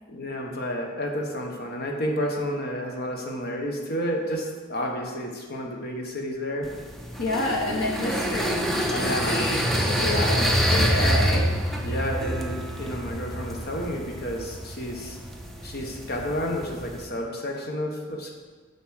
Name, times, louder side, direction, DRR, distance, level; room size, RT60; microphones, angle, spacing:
voice 1, 0.1-6.7 8.9-9.5 10.0-10.3 11.8-15.2 15.6-18.3, equal, 50° left, 1 dB, 1.3 m, -31 dB
sound 1, 6.6-17.1, equal, ahead, 0.7 m, -27 dB
voice 2, 7.2-11.5, left 2 dB, 80° left, 0 dB, 1.1 m, -29 dB
7.0 x 6.2 x 6.4 m, 1.5 s
head